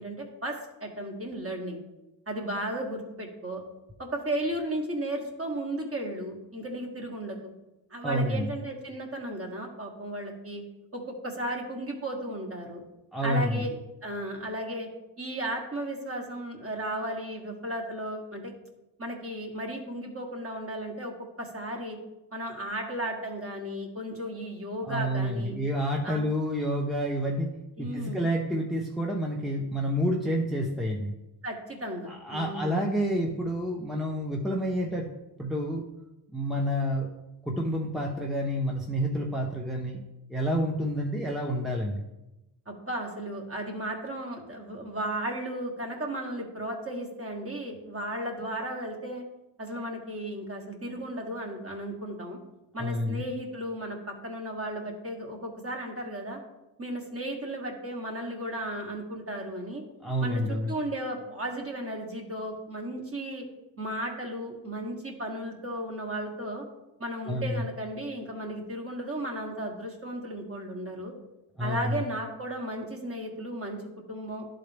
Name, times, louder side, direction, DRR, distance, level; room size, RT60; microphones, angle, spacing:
voice 1, 0.0-1.8 2.3-3.6 4.0-7.5 7.9-10.6 10.9-12.8 13.2-14.9 15.2-18.5 19.0-22.0 22.3-25.6 26.0-26.2 27.8-28.2 31.4-32.8 42.7-49.2 49.6-52.4 52.7-56.4 56.8-59.8 60.2-63.5 63.8-66.6 67.0-71.1 71.6-74.5, right 1 dB, 30° right, 1 dB, 1.6 m, -35 dB
voice 2, 8.0-8.5 13.1-13.7 24.8-27.5 27.8-31.1 32.1-35.1 35.4-35.8 36.3-37.1 37.4-40.0 40.3-42.0 52.8-53.2 60.0-60.7 67.3-67.6 71.6-72.0, equal, ahead, -1 dB, 0.8 m, -29 dB
11.5 x 3.9 x 3.4 m, 0.98 s
cardioid pair, 75°, 46 cm